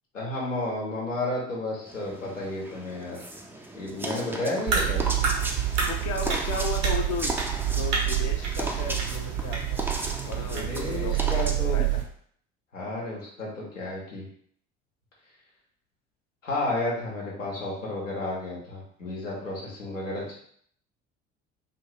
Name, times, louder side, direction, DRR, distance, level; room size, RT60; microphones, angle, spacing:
voice 1, 0.1-3.2 3.7-5.3 10.5-11.9 12.7-14.2 16.4-20.3, left 2 dB, 90° left, -4 dB, 0.9 m, -32 dB
sound 1, 1.9-11.5, right 1 dB, 5° right, 0.4 m, -36 dB
sound 2, 4.7-12.0, right 9 dB, 65° right, 0.9 m, -27 dB
voice 2, 5.9-7.4 7.8-9.8 10.3-11.9 20.2-20.3, left 4 dB, 50° left, 2 dB, 0.6 m, -35 dB
2.5 x 2.4 x 3.1 m, 0.62 s
figure-of-eight pair, 55°, 37 cm